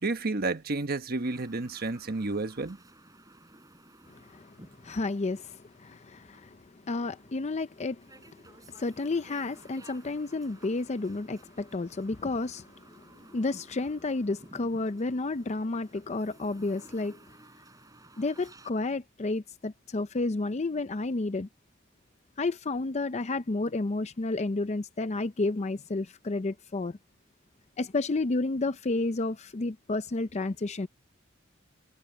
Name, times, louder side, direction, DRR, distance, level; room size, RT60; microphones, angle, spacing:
voice 1, 0.0-2.8, right 3 dB, 50° right, 1.3 m, -31 dB
sound 1, 1.2-18.7, right 2 dB, 20° right, 4.1 m, -56 dB
voice 2, 4.1-8.3 8.7-12.7 13.3-17.2 18.2-21.5 22.4-27.0 27.8-30.9, left 3 dB, 35° left, 0.5 m, -31 dB
head